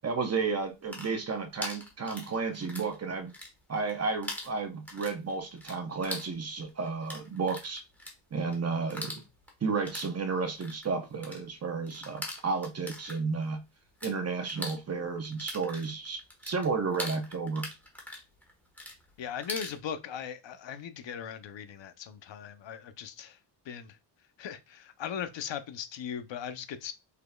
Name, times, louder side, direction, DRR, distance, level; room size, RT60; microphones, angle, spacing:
voice 1, 0.0-3.3 3.7-7.8 8.3-9.2 9.6-13.6 14.0-17.7, right 4 dB, 30° right, 0.8 m, -32 dB
sound 1, 0.7-3.0 3.2-3.9 4.2-14.1 14.4-19.8, left 1 dB, 5° left, 1.2 m, -42 dB
voice 2, 19.2-23.4 23.6-24.0 24.4-26.9, left 8 dB, 70° left, 0.7 m, -39 dB
5.5 x 4.0 x 2.2 m
wide cardioid pair, 155°, 47 cm